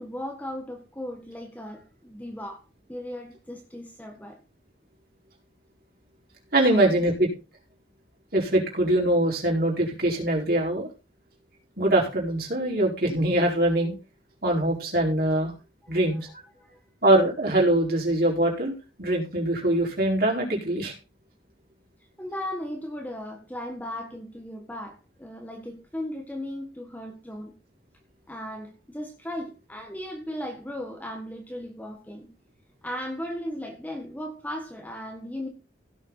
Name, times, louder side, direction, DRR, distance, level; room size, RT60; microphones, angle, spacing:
voice 1, 0.0-2.6 2.9-4.4 6.7-7.0 15.8-16.0 16.6-16.8 22.2-27.5 28.3-32.3 32.8-35.5, left 1 dB, 10° left, 1.5 m, -36 dB
voice 2, 6.5-7.3 8.3-10.9 11.8-13.9 14.4-15.5 15.9-16.2 17.0-20.9, right 1 dB, 55° right, 4.6 m, -23 dB
16.5 x 7.2 x 4.0 m
head